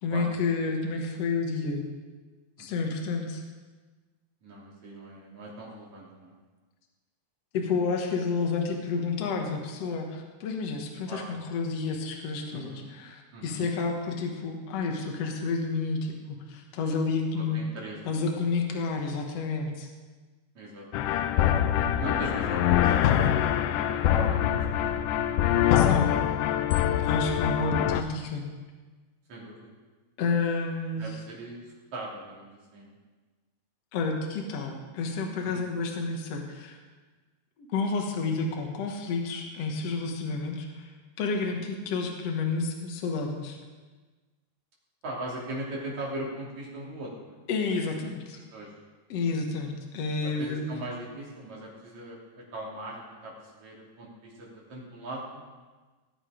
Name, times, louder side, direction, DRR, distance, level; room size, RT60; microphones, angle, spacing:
voice 1, 0.0-1.8 2.6-3.4 7.5-17.6 18.1-19.9 25.8-26.1 27.0-28.4 30.2-31.1 33.9-36.8 37.7-40.9 41.2-43.6 47.5-48.4 49.1-50.7, left 4 dB, 60° left, 2 dB, 2.3 m, -30 dB
voice 2, 4.4-6.3 11.1-11.3 12.5-12.9 13.3-13.6 17.4-18.2 20.6-21.2 22.0-25.2 29.3-29.7 31.0-33.0 35.4-35.6 41.5-41.7 45.0-47.4 48.3-48.7 50.2-55.4, right 1 dB, 65° right, -4 dB, 4.5 m, -40 dB
sound 1, 20.9-28.0, left 10 dB, 85° left, 1.4 m, -24 dB
18.5 x 8.6 x 5.1 m, 1.3 s
omnidirectional pair, 3.5 m